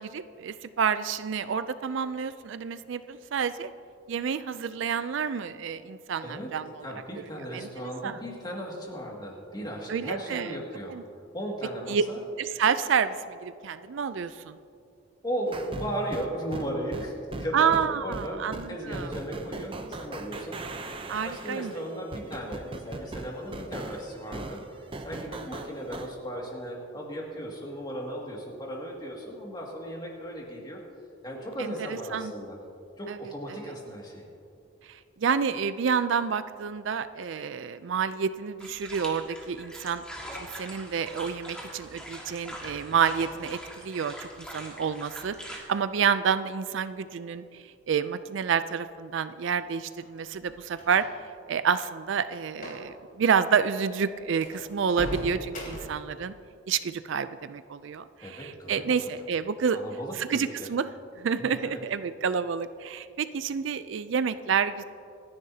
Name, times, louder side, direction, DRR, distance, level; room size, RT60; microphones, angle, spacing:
voice 1, 0.0-3.7 4.1-6.9 7.5-7.7 8.0-8.2 9.9-10.6 10.9-11.0 11.9-12.0 12.4-14.6 17.5-19.1 21.1-21.7 31.6-31.7 32.1-32.3 33.1-33.2 34.8-40.0 40.3-51.0 51.5-56.3 56.7-59.8 60.1-60.9 61.2-64.8, right 6 dB, 65° right, 13 dB, 0.4 m, -29 dB
voice 2, 6.2-6.5 6.8-11.0 11.3-12.2 15.2-20.6 21.2-30.8 31.2-32.6 33.0-34.2 58.2-58.8 59.7-60.7 61.4-61.8, equal, 20° left, -2 dB, 2.1 m, -36 dB
sound 1, 15.5-26.1, right 2 dB, 25° right, 0.6 m, -39 dB
sound 2, 38.6-45.6, equal, 5° left, 1.8 m, -43 dB
sound 3, 49.9-51.3 52.5-52.9 53.1-53.3 53.8-53.9 54.4-56.1, equal, 40° left, 3.6 m, -39 dB
26.5 x 10.5 x 2.8 m, 2.6 s
head